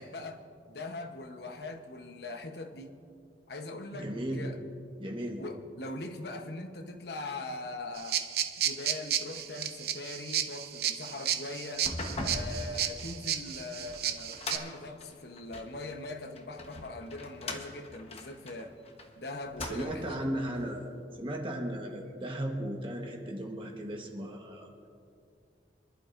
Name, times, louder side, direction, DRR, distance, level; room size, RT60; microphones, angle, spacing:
voice 1, 0.0-3.0 3.5-4.6 5.4-8.2 8.6-11.9 12.2-18.8 19.2-20.3, left 2 dB, 65° left, 5 dB, 1.0 m, -41 dB
voice 2, 3.9-4.5 5.0-5.4 19.6-20.9 21.1-24.7, right 1 dB, 30° right, 1 dB, 1.2 m, -36 dB
sound 1, 8.0-14.6, right 10 dB, 55° right, 0.7 m, -33 dB
sound 2, 11.7-15.8 16.4-19.1 19.4-20.2, left 2 dB, 35° left, 1.1 m, -40 dB
27.0 x 11.5 x 2.6 m, 2.5 s
head